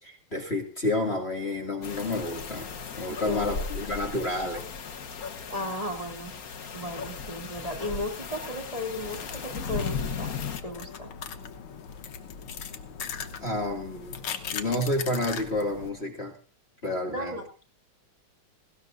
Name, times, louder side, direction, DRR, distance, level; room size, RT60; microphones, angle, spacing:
voice 1, 0.0-2.7 3.0-4.6 13.4-14.1 14.5-16.4 16.8-17.4, left 1 dB, 30° left, 2 dB, 2.3 m, -30 dB
sound 1, 1.8-10.6, left 5 dB, 50° left, 1.5 m, -36 dB
voice 2, 3.1-3.5 5.5-6.3 6.7-10.4 10.6-11.1 17.1-17.4, left 1 dB, 15° right, 1 dB, 2.6 m, -35 dB
sound 2, 9.0-15.9, left 7 dB, 90° left, 2.0 m, -39 dB
19.0 x 17.0 x 2.6 m, 0.38 s
omnidirectional pair, 2.3 m